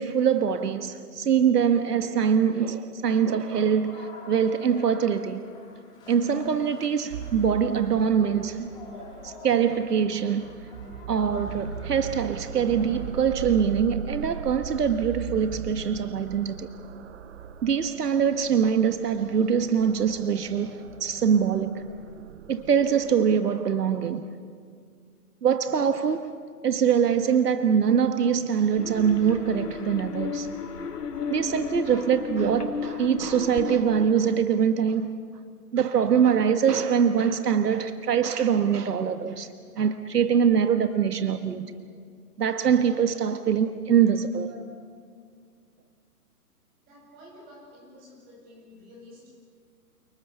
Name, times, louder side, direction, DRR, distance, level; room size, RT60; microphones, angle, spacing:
voice 1, 0.0-5.4 6.1-8.7 9.2-10.5 11.1-16.7 17.6-21.9 22.5-24.2 25.4-26.3 26.6-30.5 31.3-35.1 35.7-39.5 39.8-41.7 42.4-44.5, right 7 dB, 85° right, 1.6 m, -23 dB
sound 1, 3.4-13.1, left 2 dB, 10° left, 6.3 m, -47 dB
sound 2, 7.1-23.4, right 7 dB, 50° right, 1.0 m, -40 dB
sound 3, 28.8-33.8, left 6 dB, 85° left, 2.7 m, -34 dB
voice 2, 46.8-49.3, left 1 dB, 20° right, 8.0 m, -50 dB
30.0 x 29.0 x 6.9 m
hypercardioid pair, 165°, 46 cm